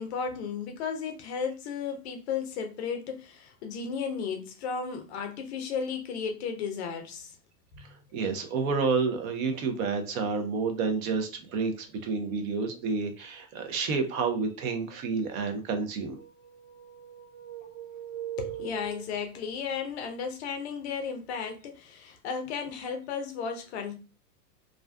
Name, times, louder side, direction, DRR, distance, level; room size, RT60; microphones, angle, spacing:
voice 1, 0.0-7.4 7.7-8.0 18.4-23.9, left 6 dB, 45° left, 0.4 m, -34 dB
voice 2, 7.8-16.2, right 4 dB, 55° right, 0.7 m, -30 dB
sound 1, 16.0-19.6, right 9 dB, ahead, 0.7 m, -41 dB
2.4 x 2.2 x 2.2 m
hypercardioid pair, 135°, 49 cm